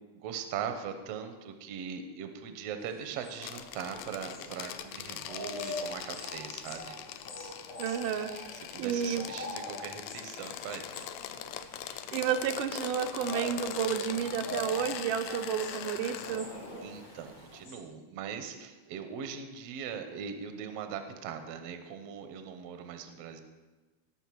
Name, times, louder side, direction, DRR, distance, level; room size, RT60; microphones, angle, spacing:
voice 1, 0.1-7.0 8.1-8.4 8.7-11.5 16.8-23.4, right 7 dB, 65° right, 7 dB, 1.7 m, -40 dB
sound 1, 2.8-17.8, left 2 dB, 60° left, 3.4 m, -44 dB
sound 2, 3.4-16.4, left 11 dB, 85° left, 2.1 m, -42 dB
Waves surf, 3.5-17.7, left 1 dB, 20° left, 0.6 m, -54 dB
voice 2, 7.8-9.3 11.9-16.5, right 8 dB, 85° right, 7 dB, 2.3 m, -32 dB
18.5 x 6.5 x 4.6 m, 1.2 s
omnidirectional pair, 3.6 m